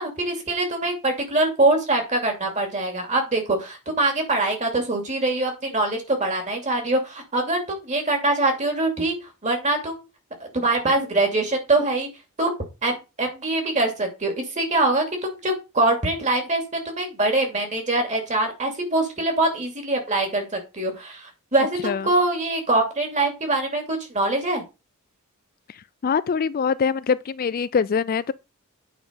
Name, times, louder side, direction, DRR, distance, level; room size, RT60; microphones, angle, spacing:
voice 1, 0.0-9.1 9.4-10.0 10.4-12.1 12.4-24.6, right 2 dB, 35° right, 2.7 m, -23 dB
voice 2, 26.0-28.3, left 6 dB, 40° left, 0.4 m, -23 dB
9.2 x 5.3 x 5.2 m
head